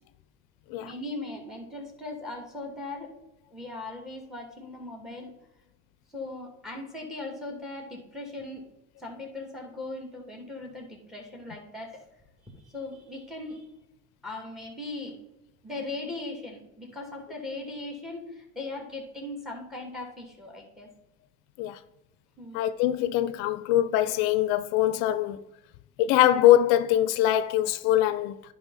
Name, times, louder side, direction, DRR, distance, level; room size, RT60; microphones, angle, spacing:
voice 1, 0.8-3.2 3.5-5.3 6.1-8.7 9.0-12.0 12.4-13.7 14.2-15.2 15.6-20.9 22.4-22.7, left 2 dB, ahead, 2.6 m, -39 dB
voice 2, 22.5-25.4 26.0-28.4, left 13 dB, 80° left, 0.6 m, -23 dB
10.5 x 5.3 x 4.1 m
supercardioid pair, 115°, 33 cm